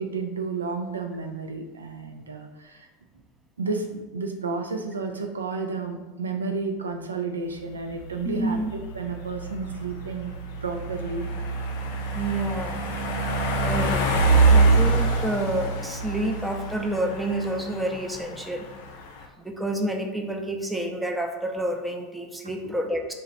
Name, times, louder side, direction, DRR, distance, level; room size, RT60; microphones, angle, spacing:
voice 1, 0.0-2.9 3.6-10.3 10.6-11.3 22.4-22.5, right 4 dB, 85° right, 4 dB, 0.3 m, -31 dB
sound 1, 7.5-19.2, right 3 dB, 65° left, 0.4 m, -25 dB
voice 2, 8.2-8.7 12.1-12.8 13.6-18.7 19.4-23.0, right 1 dB, 5° right, 3 dB, 0.4 m, -29 dB
3.0 x 2.0 x 3.8 m, 1.1 s
hypercardioid pair, 85°, 0 cm